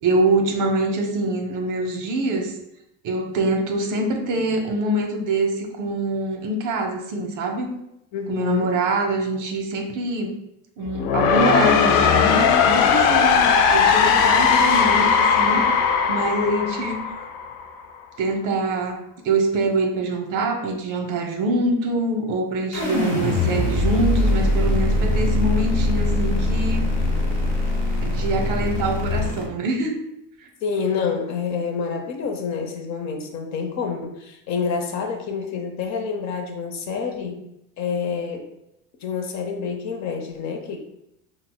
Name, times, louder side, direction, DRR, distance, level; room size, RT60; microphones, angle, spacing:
voice 1, 0.0-2.5 3.0-7.7 8.3-10.3 10.8-15.7 16.1-17.2 18.2-26.8 28.0-30.0 30.4-30.5, right 2 dB, 50° right, 3 dB, 0.7 m, -24 dB
voice 2, 8.1-8.7 22.7-22.8 30.6-37.4 37.8-38.5 39.0-40.8, left 6 dB, 45° left, 3 dB, 0.6 m, -27 dB
sound 1, 10.8-17.8, left 6 dB, 85° left, 0.6 m, -18 dB
sound 2, 22.7-29.4, left 2 dB, 25° left, 1.4 m, -22 dB
5.6 x 2.0 x 2.2 m, 0.81 s
cardioid pair, 120°, 40 cm